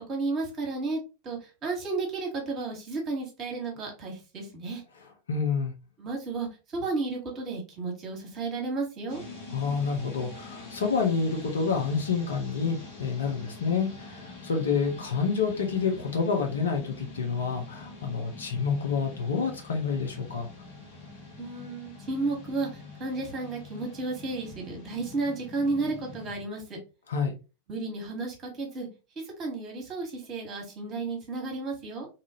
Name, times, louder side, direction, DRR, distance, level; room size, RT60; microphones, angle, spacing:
voice 1, 0.1-4.8 6.0-6.5 6.7-9.2 21.4-22.7 23.0-26.8 27.7-28.9 29.4-32.1, right 3 dB, 30° right, 1 dB, 1.2 m, -32 dB
voice 2, 5.3-5.7 9.5-20.5 27.1-27.3, left 5 dB, 65° left, 3 dB, 0.7 m, -28 dB
sound 1, 9.1-26.4, left 3 dB, 50° left, 1.2 m, -45 dB
2.7 x 2.5 x 2.7 m, 0.31 s
figure-of-eight pair, 90°, 0 cm